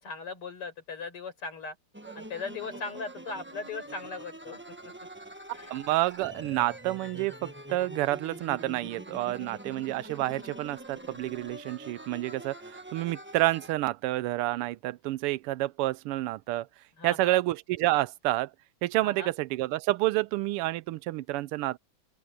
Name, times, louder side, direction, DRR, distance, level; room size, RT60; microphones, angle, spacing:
voice 1, 0.0-1.8 2.2-4.9 5.5-5.8 17.0-17.4 19.0-19.3, left 4 dB, 80° left, 6.1 m, -39 dB
sound 1, 1.9-13.7, right 1 dB, 10° right, 0.7 m, -45 dB
voice 2, 5.7-16.7 17.0-18.5 18.8-21.8, right 17 dB, 85° right, 1.5 m, -29 dB
open air
omnidirectional pair, 2.4 m